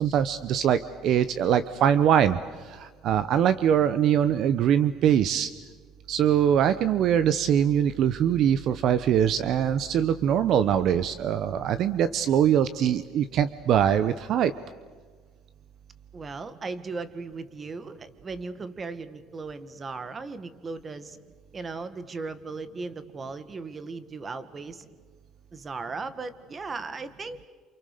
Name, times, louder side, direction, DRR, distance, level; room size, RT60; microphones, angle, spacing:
voice 1, 0.0-5.5 6.1-14.5, right 9 dB, 55° right, 13 dB, 0.9 m, -23 dB
voice 2, 16.1-21.2 21.5-24.9 25.5-27.5, right 4 dB, 25° right, 13 dB, 1.7 m, -37 dB
29.0 x 28.0 x 6.8 m, 1.5 s
cardioid pair, 140°, 0 cm